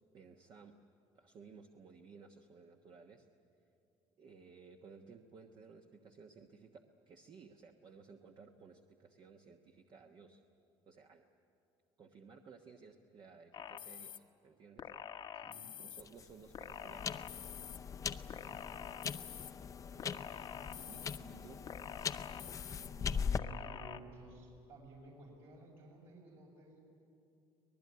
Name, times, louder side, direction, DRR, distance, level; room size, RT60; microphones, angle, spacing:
voice 1, 0.1-0.7 1.1-3.3 4.2-10.4 10.9-11.2 12.0-14.9 15.8-17.2 20.7-21.6, right 5 dB, 45° right, 4 dB, 1.2 m, -57 dB
sound 1, 13.5-14.2 14.8-16.0 16.5-17.8 18.3-19.5 20.0-21.2 21.7-22.9 23.3-24.0, left 9 dB, 45° left, 1.0 m, -47 dB
sound 2, 16.0-23.4, left 6 dB, 30° left, 0.6 m, -41 dB
voice 2, 18.2-18.6 19.9-20.2 20.5-21.4 22.7-26.8, right 2 dB, 60° right, -2 dB, 6.1 m, -55 dB
24.5 x 19.0 x 9.6 m, 2.5 s
cardioid pair, 125°, 11 cm